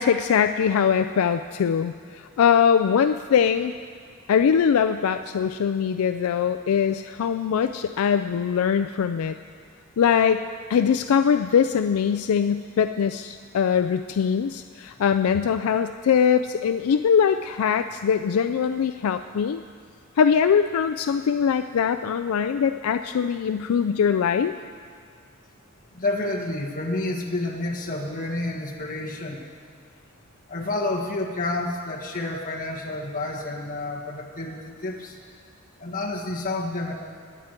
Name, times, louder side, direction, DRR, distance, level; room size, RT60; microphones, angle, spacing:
voice 1, 0.0-3.7 4.3-9.4 10.0-10.4 10.7-19.6 20.2-24.5, left 7 dB, 75° left, 9 dB, 0.3 m, -22 dB
voice 2, 25.9-29.4 30.5-35.2 35.8-36.9, left 2 dB, 40° left, 0 dB, 1.5 m, -29 dB
20.5 x 9.0 x 4.4 m, 2.1 s
head